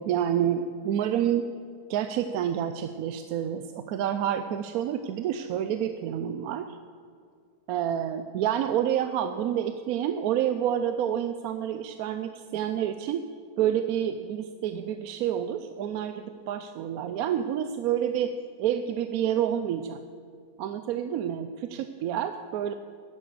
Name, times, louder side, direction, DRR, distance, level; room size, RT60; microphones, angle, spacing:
voice 1, 0.0-1.4 1.9-6.8 7.7-13.2 13.6-18.3 18.6-20.0 20.6-22.7, right 10 dB, 75° right, 9 dB, 1.0 m, -28 dB
11.0 x 10.0 x 6.8 m, 2.2 s
omnidirectional pair, 1.6 m